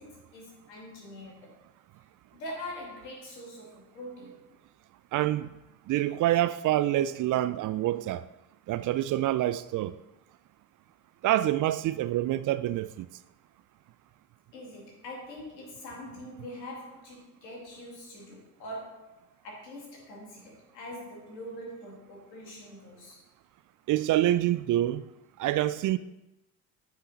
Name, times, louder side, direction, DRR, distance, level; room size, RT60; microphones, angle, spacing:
voice 1, 0.0-1.6 2.3-4.4 14.5-23.2, left 1 dB, 85° left, 2.3 m, -43 dB
voice 2, 5.1-5.5 5.9-8.2 8.7-9.9 11.2-13.1 23.9-25.0 25.4-26.0, right 13 dB, 40° right, 0.4 m, -26 dB
9.1 x 5.6 x 4.1 m
hypercardioid pair, 55°, 49 cm